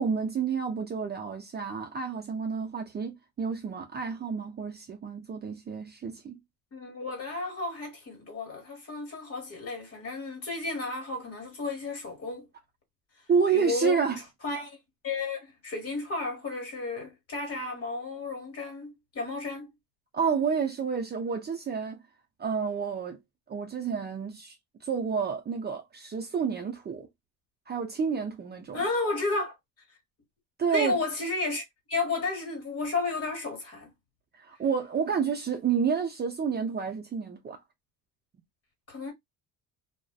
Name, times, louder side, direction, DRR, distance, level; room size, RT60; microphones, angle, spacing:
voice 1, 0.0-6.4 13.3-14.2 20.1-22.0 22.4-23.2 23.5-24.6 24.8-27.1 27.7-28.8 30.6-31.0 34.4-37.6, right 6 dB, 30° right, 0.5 m, -29 dB
voice 2, 6.7-12.5 13.5-14.0 14.4-14.8 15.0-19.7 28.7-29.5 30.7-31.6 31.9-33.9 38.9-39.1, left 3 dB, 40° left, 1.3 m, -32 dB
2.5 x 2.1 x 2.4 m
cardioid pair, 95°, 36 cm